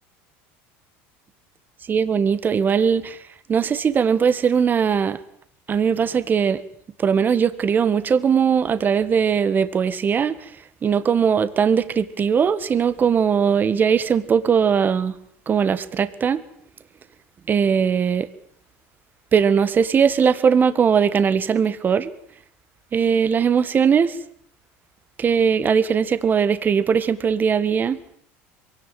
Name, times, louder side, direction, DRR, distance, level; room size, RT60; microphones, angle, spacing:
voice 1, 1.9-3.2 3.5-5.2 5.7-6.6 7.0-10.3 10.8-15.1 15.5-16.4 17.5-18.3 19.3-22.1 22.9-24.2 25.2-28.0, right 7 dB, 30° right, 1.6 m, -19 dB
23.0 x 17.5 x 9.2 m
supercardioid pair, 115°, 6 cm